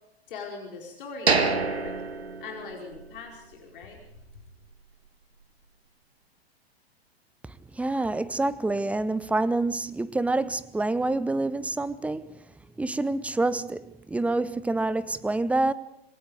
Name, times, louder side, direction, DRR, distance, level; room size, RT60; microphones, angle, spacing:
voice 1, 0.3-2.0 2.4-4.0, left 4 dB, 55° left, 4.8 m, -41 dB
sound 1, 1.3-3.2 3.5-3.6 4.1-4.3, right 4 dB, 80° right, 2.0 m, -27 dB
voice 2, 7.8-12.3 12.8-15.7, right 2 dB, 5° right, 0.8 m, -27 dB
27.0 x 21.5 x 5.1 m
figure-of-eight pair, 100°, 31 cm